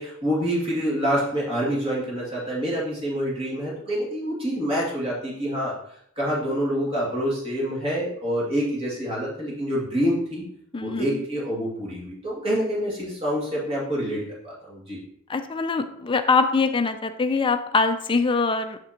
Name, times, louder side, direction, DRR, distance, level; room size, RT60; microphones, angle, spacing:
voice 1, 0.0-5.8 6.2-10.4 10.8-15.0, equal, 30° right, -5 dB, 2.3 m, -27 dB
voice 2, 10.7-11.2 15.3-18.8, left 4 dB, 25° left, 8 dB, 0.5 m, -23 dB
6.7 x 6.2 x 2.9 m, 0.68 s
head